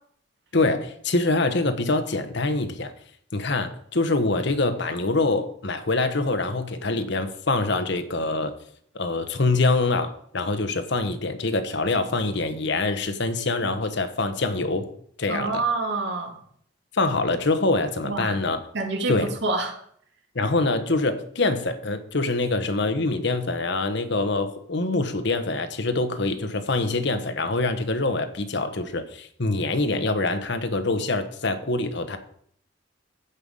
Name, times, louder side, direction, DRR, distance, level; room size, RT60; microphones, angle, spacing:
voice 1, 0.5-2.9 3.3-8.5 8.9-14.9 15.2-15.6 16.9-18.6 19.1-19.3 20.3-32.2, left 2 dB, 60° left, 8 dB, 1.2 m, -25 dB
voice 2, 15.3-16.4 18.0-18.3 18.7-19.7, right 3 dB, 60° right, 3 dB, 2.1 m, -27 dB
15.0 x 5.7 x 5.5 m, 0.63 s
head